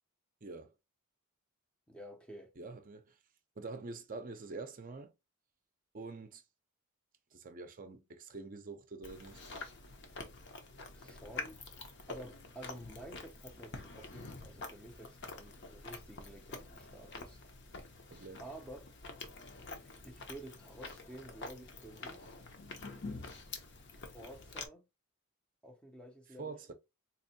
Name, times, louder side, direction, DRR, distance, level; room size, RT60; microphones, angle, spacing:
voice 1, 0.4-0.7 2.6-3.1 3.6-5.1 5.9-6.4 7.3-9.4 18.1-18.4 26.4-26.7, right 3 dB, 40° right, 0.5 m, -46 dB
voice 2, 1.9-2.5 10.9-11.6 12.1-17.4 18.4-18.9 20.0-22.3 23.9-24.9 25.6-26.7, right 1 dB, 5° left, 0.6 m, -51 dB
Chewing mastication, 9.0-24.7, left 3 dB, 55° left, 0.8 m, -47 dB
4.1 x 2.6 x 2.6 m
head